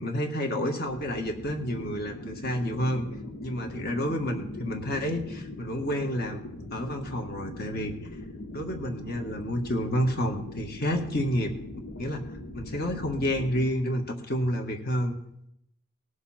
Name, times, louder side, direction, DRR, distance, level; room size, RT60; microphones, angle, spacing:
voice 1, 0.0-3.1 3.4-6.4 6.7-8.0 8.5-11.5 12.0-12.2 12.5-15.2, equal, 50° left, 3 dB, 1.7 m, -29 dB
sound 1, 0.8-13.7, left 1 dB, 80° left, 1.2 m, -41 dB
19.0 x 7.1 x 4.3 m, 0.79 s
head